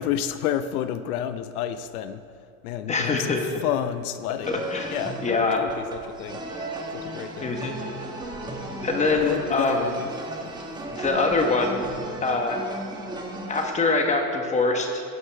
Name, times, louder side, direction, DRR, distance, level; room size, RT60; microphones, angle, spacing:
voice 1, 0.0-2.2 2.6-3.4 3.6-4.6 4.9-6.4 6.9-7.5 9.2-10.1 10.4-10.5, left 10 dB, 75° left, 11 dB, 0.7 m, -30 dB
voice 2, 2.9-3.4 4.5-5.0 5.2-5.6 7.4-7.8 8.8-9.9 10.9-11.8 12.2-12.6 13.5-15.0, left 3 dB, 15° left, 3 dB, 1.2 m, -24 dB
sound 1, 4.4-13.7, right 1 dB, 10° right, 1.2 m, -35 dB
Bowed string instrument, 6.4-12.2, right 5 dB, 35° right, 2.0 m, -43 dB
16.5 x 11.0 x 3.4 m, 2.4 s
supercardioid pair, 130°, 44 cm